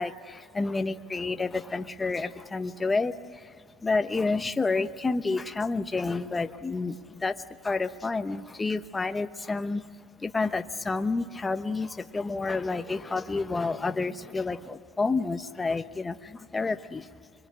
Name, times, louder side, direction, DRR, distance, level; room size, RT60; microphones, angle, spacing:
voice 1, 0.0-3.6 3.8-9.9 10.2-17.1, left 3 dB, 15° left, 9 dB, 0.9 m, -29 dB
26.0 x 22.5 x 8.6 m, 2.1 s
cardioid pair, 135°, 0 cm